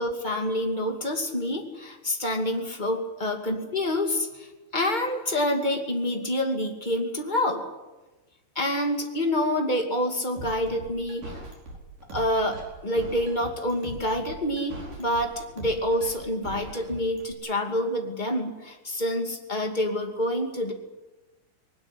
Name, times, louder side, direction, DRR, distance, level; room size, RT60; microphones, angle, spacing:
voice 1, 0.0-7.6 8.5-11.4 12.1-20.7, left 1 dB, 20° left, 3 dB, 1.1 m, -27 dB
sound 1, 10.4-17.3, right 2 dB, 45° right, 6.3 m, -40 dB
20.5 x 19.0 x 9.8 m, 1.1 s
omnidirectional pair, 5.3 m